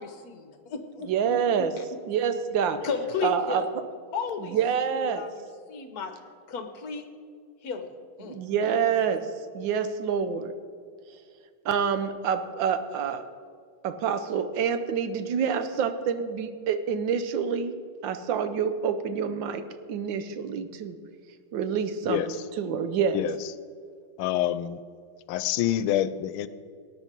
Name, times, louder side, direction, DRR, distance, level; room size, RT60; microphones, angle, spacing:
voice 1, 0.0-2.0 2.8-3.6 4.1-4.6 4.9-6.1 6.5-7.1 7.6-7.9 8.2-8.7, left 5 dB, 55° left, 7 dB, 1.4 m, -34 dB
voice 2, 1.1-1.7 2.1-2.8 3.2-3.6 4.5-5.3 8.2-9.3 9.5-10.6 11.6-13.2 13.8-17.7 18.0-19.6 19.9-21.0 21.5-22.2 22.6-23.2, right 7 dB, 70° right, 10 dB, 1.5 m, -27 dB
voice 3, 24.2-24.8 25.3-26.5, left 12 dB, 85° left, 15 dB, 1.4 m, -26 dB
18.5 x 9.9 x 4.5 m, 2.1 s
omnidirectional pair, 2.3 m